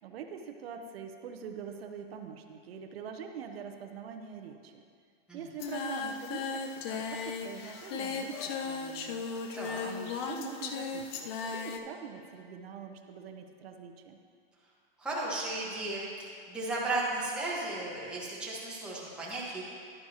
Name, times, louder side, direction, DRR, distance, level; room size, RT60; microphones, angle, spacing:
voice 1, 0.0-4.8 5.3-9.3 9.8-14.2, right 7 dB, 85° right, 5 dB, 0.8 m, -44 dB
Singing, 5.6-11.8, left 5 dB, 25° left, 0.3 m, -36 dB
voice 2, 15.0-19.6, right 2 dB, 5° right, -7 dB, 1.4 m, -35 dB
11.0 x 9.4 x 2.9 m, 2.2 s
supercardioid pair, 160°, 30 cm